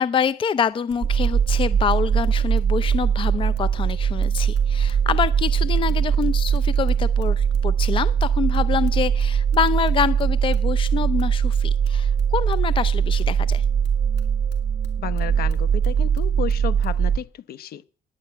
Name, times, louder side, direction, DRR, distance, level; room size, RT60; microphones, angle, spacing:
voice 1, 0.0-13.6, left 7 dB, 30° left, 0.5 m, -26 dB
sound 1, 0.7-17.0, left 3 dB, 85° left, 2.6 m, -44 dB
sound 2, 1.0-17.2, right 7 dB, 30° right, 1.5 m, -21 dB
voice 2, 15.0-17.8, left 10 dB, 65° left, 0.9 m, -32 dB
10.5 x 8.1 x 8.7 m
cardioid pair, 110°, 17 cm